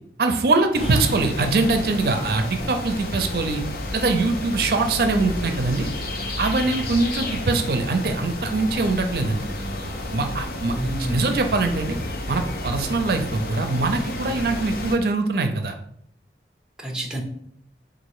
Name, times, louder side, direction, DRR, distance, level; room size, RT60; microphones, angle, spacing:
voice 1, 0.2-3.6 3.9-5.9 6.4-9.5 10.1-10.7 11.1-12.0 12.3-15.8, right 3 dB, 55° right, 6 dB, 0.4 m, -23 dB
sound 1, 0.7-15.0, left 1 dB, 55° left, 0.6 m, -31 dB
voice 2, 0.8-1.3 10.7-11.3 16.8-17.2, right 1 dB, 5° right, 0 dB, 0.6 m, -30 dB
4.0 x 2.5 x 4.7 m, 0.68 s
head